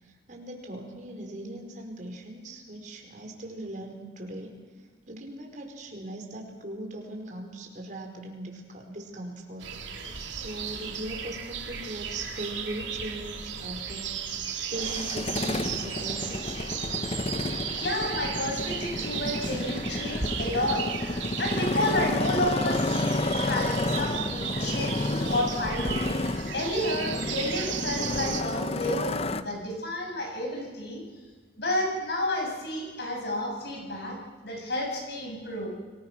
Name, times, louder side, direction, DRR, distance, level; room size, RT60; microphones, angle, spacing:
voice 1, 0.0-4.5 5.1-9.7 10.1-14.2 14.7-16.6, right 1 dB, 45° right, 2 dB, 4.8 m, -39 dB
sound 1, 9.6-28.4, right 7 dB, 85° right, 2.7 m, -35 dB
Motorcycle, 14.7-29.4, left 2 dB, 35° left, 0.8 m, -31 dB
voice 2, 17.8-20.8 21.4-26.0 26.5-31.0 31.6-34.2 34.4-35.7, left 1 dB, 60° left, 1 dB, 7.3 m, -31 dB
29.5 x 20.5 x 6.2 m, 1.4 s
head